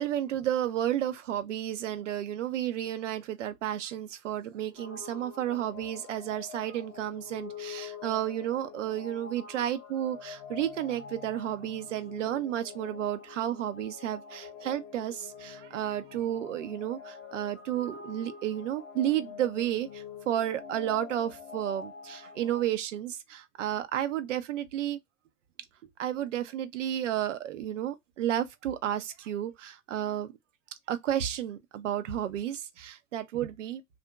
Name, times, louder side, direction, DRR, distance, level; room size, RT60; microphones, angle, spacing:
voice 1, 0.0-25.0 26.0-30.3 30.9-33.8, right 11 dB, 80° right, 0.7 m, -32 dB
sound 1, 4.8-22.7, left 6 dB, 25° left, 0.7 m, -46 dB
2.8 x 2.5 x 2.2 m
hypercardioid pair, 95°, 37 cm